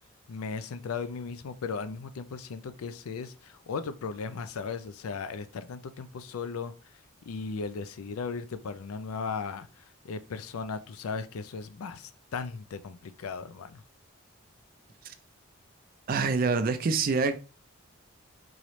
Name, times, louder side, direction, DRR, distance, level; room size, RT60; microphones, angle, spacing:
voice 1, 0.3-6.7 7.2-13.8, left 5 dB, 85° left, 0.4 m, -37 dB
voice 2, 16.1-17.3, right 4 dB, 40° right, 0.4 m, -26 dB
3.8 x 3.0 x 3.1 m
head